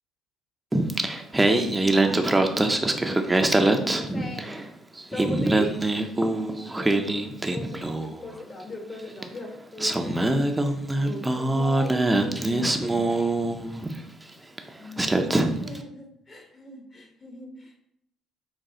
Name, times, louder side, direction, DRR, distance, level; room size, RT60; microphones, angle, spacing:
Singing, 0.7-4.7 5.0-8.2 9.2-9.3 9.8-14.0 14.6-14.7 15.0-15.8, right 2 dB, 15° right, 0.5 m, -24 dB
voice 1, 1.7-2.4 3.7-4.6 5.1-5.8 6.7-10.7 11.0-13.5 14.8-18.0, left 1 dB, 40° left, 2 dB, 1.1 m, -39 dB
6.0 x 2.3 x 2.8 m, 0.76 s
hypercardioid pair, 55°, 0 cm